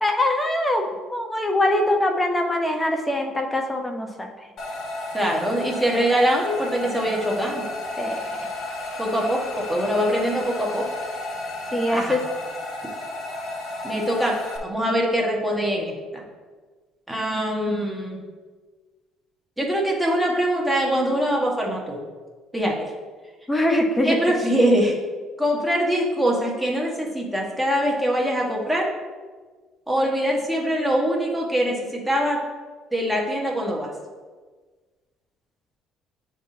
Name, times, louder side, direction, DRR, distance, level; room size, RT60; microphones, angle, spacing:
voice 1, 0.0-4.3 8.0-8.3 11.7-12.2 23.5-24.2, left 1 dB, 15° left, 3 dB, 1.0 m, -23 dB
sound 1, 4.6-14.6, left 2 dB, 55° left, 1.1 m, -33 dB
voice 2, 5.1-7.7 9.0-10.9 11.9-12.2 13.8-16.2 17.1-18.2 19.6-22.0 22.5-22.9 24.0-24.9 25.4-28.9 29.9-32.4 32.9-33.9, equal, 5° right, -2 dB, 1.5 m, -23 dB
9.8 x 3.7 x 2.8 m, 1.4 s
supercardioid pair, 80°, 0 cm